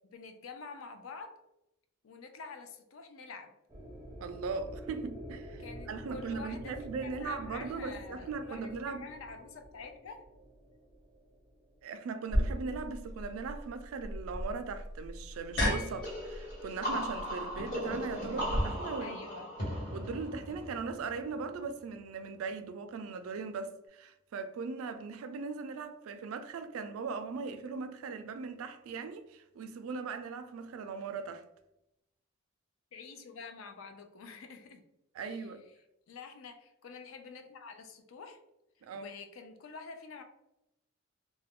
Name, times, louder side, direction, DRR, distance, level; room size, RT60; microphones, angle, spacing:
voice 1, 0.1-1.4 2.0-3.5 5.6-10.2 19.0-19.5 32.9-34.8 35.2-35.5 36.1-38.4 38.9-40.2, left 4 dB, 75° left, 0.4 m, -47 dB
sound 1, 3.7-11.8, equal, 15° right, 0.4 m, -48 dB
voice 2, 4.2-9.1 11.8-19.2 19.9-31.4 35.1-35.6 38.8-39.1, right 4 dB, 85° right, 0.3 m, -39 dB
sound 2, 12.3-18.6, equal, 55° left, 0.8 m, -35 dB
sound 3, 16.0-21.6, equal, 40° left, 1.2 m, -38 dB
2.3 x 2.1 x 3.5 m
head